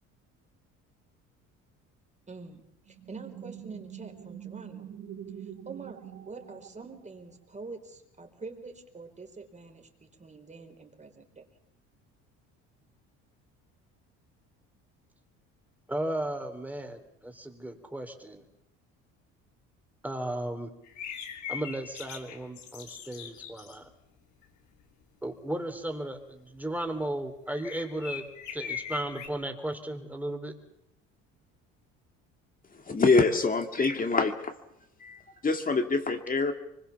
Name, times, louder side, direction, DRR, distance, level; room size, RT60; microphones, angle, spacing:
voice 1, 2.3-4.9 5.4-11.5, right 4 dB, 25° right, 4 dB, 4.4 m, -46 dB
sound 1, 2.9-7.3, right 9 dB, 50° right, 2.0 m, -45 dB
voice 2, 15.9-18.4 20.0-20.7 21.5-23.9 25.2-28.2 28.5-30.5, right 1 dB, 5° right, 5 dB, 3.7 m, -35 dB
sound 2, 20.8-23.7 27.5-29.3, left 8 dB, 70° left, 3.0 m, -40 dB
voice 3, 32.9-34.5 35.0-36.5, left 3 dB, 25° left, 6 dB, 2.4 m, -25 dB
24.0 x 21.5 x 7.1 m, 0.80 s
supercardioid pair, 90°, 30 cm